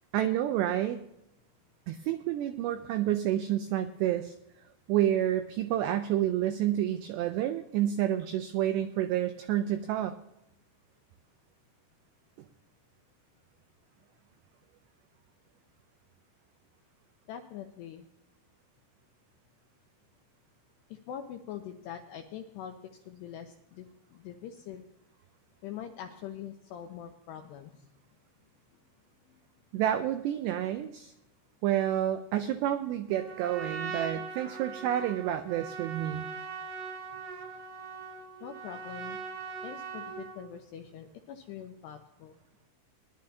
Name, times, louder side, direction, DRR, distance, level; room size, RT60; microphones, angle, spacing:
voice 1, 0.1-1.0 1.9-4.3 4.9-10.1 29.7-31.1 31.6-36.3, right 11 dB, 90° right, 8 dB, 2.4 m, -29 dB
voice 2, 17.3-18.1 20.9-22.8 23.1-24.8 25.6-27.9 38.4-39.2 39.6-42.4, left 9 dB, 85° left, 4 dB, 2.4 m, -43 dB
Trumpet, 33.1-40.4, right 5 dB, 60° right, 2.9 m, -40 dB
20.5 x 11.5 x 2.8 m, 0.86 s
omnidirectional pair, 5.7 m